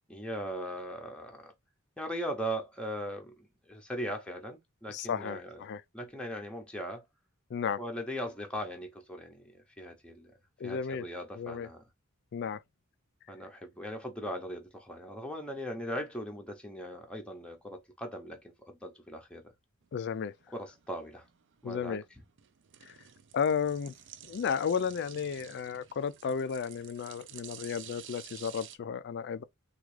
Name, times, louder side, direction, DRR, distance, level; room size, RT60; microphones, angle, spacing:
voice 1, 0.0-1.5 2.0-5.7 5.9-7.0 7.8-10.3 10.6-11.8 13.3-19.4 20.5-21.3 21.6-22.0, equal, 5° left, 0.6 m, -39 dB
voice 2, 4.9-5.8 7.5-7.8 10.6-11.0 11.4-11.7 12.3-12.6 19.9-20.3 21.6-22.0 22.9-23.0 23.3-23.9 24.2-29.4, left 7 dB, 55° left, 0.3 m, -33 dB
sound 1, 19.8-28.8, right 10 dB, 55° right, 0.4 m, -51 dB
3.5 x 2.3 x 3.2 m
head